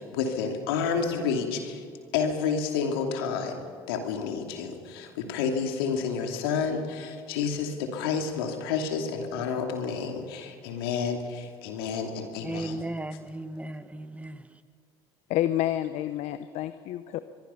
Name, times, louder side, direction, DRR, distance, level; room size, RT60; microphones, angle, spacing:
voice 1, 0.0-1.8 2.1-3.6 3.9-12.8, left 6 dB, 85° left, 4 dB, 2.8 m, -30 dB
voice 2, 12.4-14.4, right 2 dB, 10° right, 12 dB, 1.4 m, -36 dB
voice 3, 15.3-17.2, left 13 dB, 65° left, 12 dB, 0.9 m, -29 dB
24.5 x 23.0 x 5.7 m, 2.2 s
hypercardioid pair, 65°, 12 cm